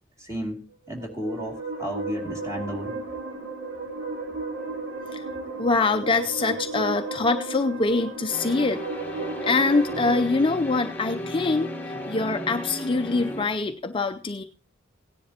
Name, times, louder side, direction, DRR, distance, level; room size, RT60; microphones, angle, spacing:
voice 1, 0.2-3.0, equal, 15° right, 1 dB, 2.4 m, -33 dB
sound 1, 0.9-10.3, right 3 dB, 70° right, 3.2 m, -34 dB
voice 2, 5.6-8.8 9.1-14.4, left 3 dB, 25° left, 7 dB, 0.5 m, -24 dB
sound 2, 8.3-13.5, equal, 10° left, 1.1 m, -35 dB
17.5 x 10.5 x 2.8 m, 0.34 s
head